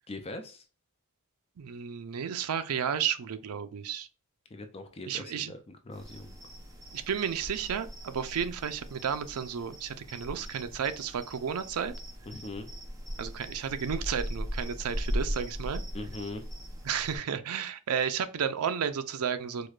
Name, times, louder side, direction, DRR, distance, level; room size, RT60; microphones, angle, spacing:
voice 1, 0.1-0.6 4.5-6.4 12.3-12.7 15.9-16.4, left 2 dB, 25° left, 0.4 m, -41 dB
voice 2, 1.6-4.1 5.1-5.5 6.9-11.9 13.2-15.8 16.8-19.7, right 7 dB, 75° right, 0.4 m, -32 dB
sound 1, 5.9-17.2, equal, 15° right, 0.7 m, -39 dB
4.7 x 2.2 x 2.4 m
head